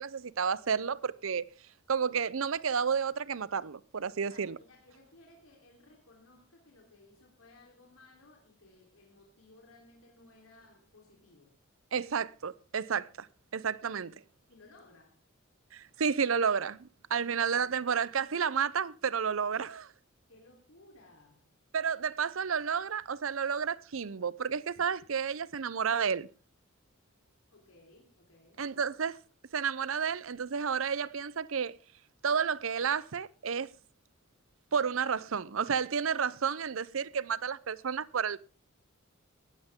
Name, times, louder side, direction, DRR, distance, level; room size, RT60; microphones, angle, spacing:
voice 1, 0.0-1.5 1.9-4.6 11.9-13.3 13.5-14.1 15.7-19.9 21.7-26.3 28.6-29.2 29.5-31.8 32.2-33.7 34.7-38.4, right 6 dB, 70° right, 0.6 m, -31 dB
voice 2, 4.3-11.5 14.5-15.2 17.2-17.3 17.6-18.0 20.3-21.5 27.5-28.6, left 2 dB, 80° left, 3.7 m, -59 dB
18.0 x 13.0 x 3.7 m
head